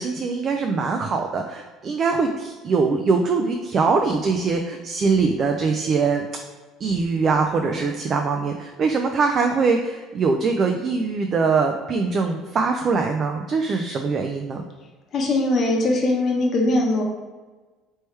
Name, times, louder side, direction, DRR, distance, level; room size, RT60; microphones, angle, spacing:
voice 1, 0.0-6.2 6.8-14.6, right 4 dB, 45° right, 4 dB, 0.3 m, -22 dB
voice 2, 15.1-17.0, left 2 dB, 50° left, 0 dB, 0.9 m, -21 dB
3.2 x 3.0 x 3.2 m, 1.3 s
supercardioid pair, 95°, 0 cm